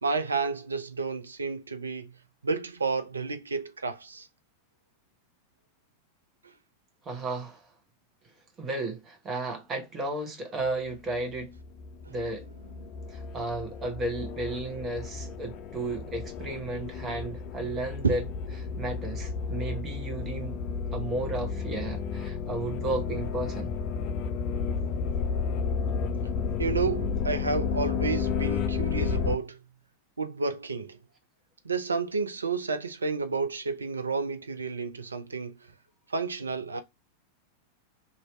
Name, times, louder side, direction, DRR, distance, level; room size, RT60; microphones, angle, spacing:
voice 1, 0.0-2.1 2.4-4.3 18.0-18.2 26.6-29.6 30.2-31.0 31.6-35.5 36.1-36.8, right 4 dB, 75° right, 0.5 m, -30 dB
voice 2, 7.0-7.7 8.6-11.6 12.1-12.4 13.1-18.2 18.6-20.6 20.9-23.7, right 2 dB, 25° right, 1.0 m, -33 dB
sound 1, 11.1-29.4, left 5 dB, 35° left, 0.4 m, -32 dB
2.9 x 2.7 x 3.1 m
figure-of-eight pair, 90°, 0 cm